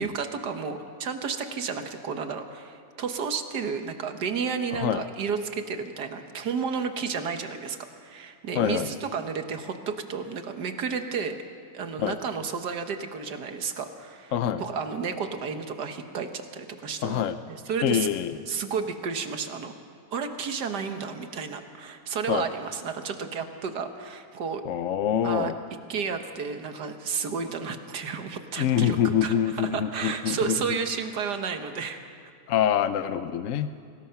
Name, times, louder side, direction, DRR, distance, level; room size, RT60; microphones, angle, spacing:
voice 1, 0.0-11.4 11.7-18.1 18.5-19.7 20.1-24.6 25.2-25.5 25.9-32.0, right 5 dB, 70° right, 7 dB, 1.8 m, -32 dB
voice 2, 8.5-8.9 12.0-12.2 14.3-14.6 17.0-17.4 17.8-18.4 22.3-22.4 24.7-25.5 28.6-30.6 32.5-33.7, left 9 dB, 60° left, 11 dB, 0.8 m, -25 dB
24.5 x 18.5 x 5.8 m, 2.3 s
omnidirectional pair, 1.9 m